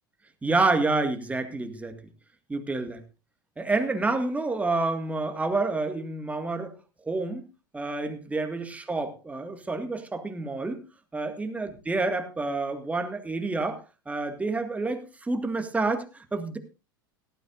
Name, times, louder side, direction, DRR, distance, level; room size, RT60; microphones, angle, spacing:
voice 1, 0.4-1.9 2.5-3.0 3.6-6.8 7.1-7.4 7.7-10.8 11.1-16.6, right 3 dB, 10° right, 7 dB, 2.0 m, -28 dB
17.5 x 12.5 x 2.6 m, 0.29 s
hypercardioid pair, 85°, 12 cm